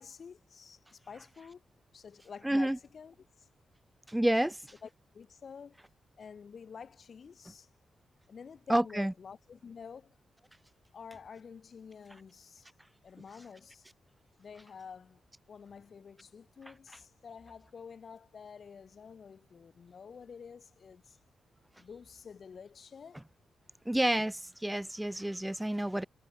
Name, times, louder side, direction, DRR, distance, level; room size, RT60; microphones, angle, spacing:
voice 1, 0.0-1.6 1.9-3.5 4.8-5.8 6.2-7.7 8.3-10.2 10.9-12.7 13.0-13.9 14.4-15.2 15.5-21.2 21.8-23.2, left 6 dB, 50° left, 4.0 m, -49 dB
voice 2, 2.4-2.8 4.1-4.7 8.7-9.1 23.9-26.0, right 1 dB, 5° right, 0.6 m, -29 dB
wide cardioid pair, 120°, 0 cm